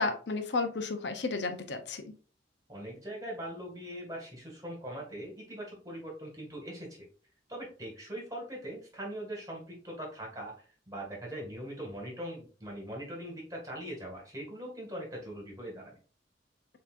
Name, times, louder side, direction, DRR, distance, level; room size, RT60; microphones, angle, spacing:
voice 1, 0.0-2.1, left 3 dB, 70° left, 7 dB, 0.7 m, -32 dB
voice 2, 2.7-7.0 7.5-10.5 10.9-15.9, right 1 dB, 20° right, -1 dB, 1.8 m, -41 dB
6.8 x 2.9 x 2.5 m, 0.40 s
head